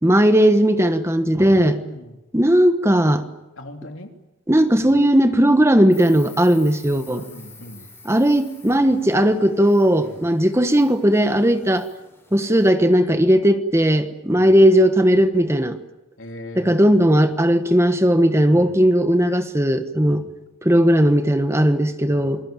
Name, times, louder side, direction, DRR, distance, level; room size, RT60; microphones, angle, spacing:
voice 1, 0.0-1.8 2.3-3.2 4.5-7.2 8.0-11.9 12.3-15.8 16.5-20.2 20.6-22.4, equal, 15° right, 9 dB, 1.3 m, -17 dB
voice 2, 1.5-2.2 3.6-4.1 7.1-7.9 10.0-10.2 14.3-14.5 16.2-16.8 18.5-18.8 20.0-20.4 22.0-22.3, left 1 dB, 75° left, 4 dB, 3.3 m, -39 dB
Insect, 5.9-12.7, left 4 dB, 10° left, 7.9 m, -47 dB
27.5 x 20.5 x 9.0 m, 0.99 s
head